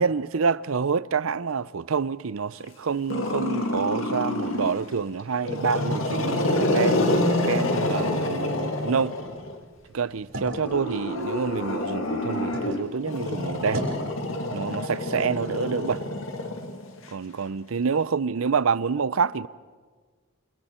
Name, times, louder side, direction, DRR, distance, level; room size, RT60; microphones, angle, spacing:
voice 1, 0.0-9.1 9.9-13.9 14.5-16.0 17.1-19.5, right 5 dB, 90° right, 0.6 m, -27 dB
Growling, 3.1-4.8 5.4-9.6 10.5-17.1, left 1 dB, 70° left, 2.0 m, -27 dB
sound 1, 9.0-12.8 13.2-14.1, right 1 dB, 75° right, 7.6 m, -38 dB
28.5 x 28.0 x 4.4 m
head